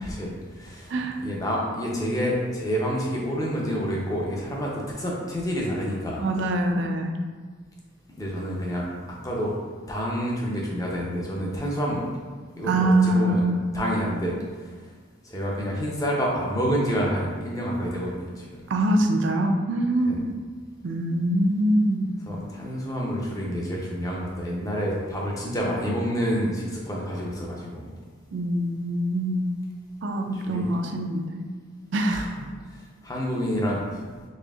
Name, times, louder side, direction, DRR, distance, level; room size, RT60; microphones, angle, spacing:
voice 1, 0.1-0.9 1.2-6.3 8.2-8.9 9.2-9.5 9.9-12.0 12.6-13.4 13.7-14.3 15.2-18.6 20.1-20.2 22.3-27.9 30.3-30.7 32.1-32.2 33.0-34.0, equal, 15° left, -3 dB, 0.6 m, -28 dB
voice 2, 0.9-1.2 6.2-7.2 12.7-13.7 18.7-20.3 20.8-22.2 28.3-29.5 30.0-31.4 31.9-32.5, right 1 dB, 65° right, 4 dB, 0.4 m, -24 dB
4.2 x 3.4 x 2.4 m, 1.5 s
head